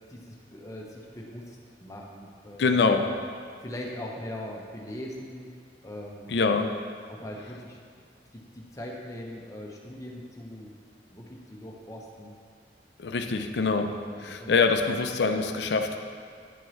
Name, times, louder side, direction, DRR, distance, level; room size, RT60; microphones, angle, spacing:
voice 1, 0.1-3.0 3.6-5.5 5.8-6.3 7.1-7.8 8.3-10.8 11.1-12.3 13.2-13.4 14.0-14.6, left 1 dB, 20° left, -2 dB, 0.8 m, -41 dB
voice 2, 2.6-3.1 6.3-6.7 13.0-13.9 14.2-16.0, left 4 dB, 70° left, 6 dB, 0.5 m, -24 dB
9.8 x 4.5 x 3.1 m, 2.2 s
head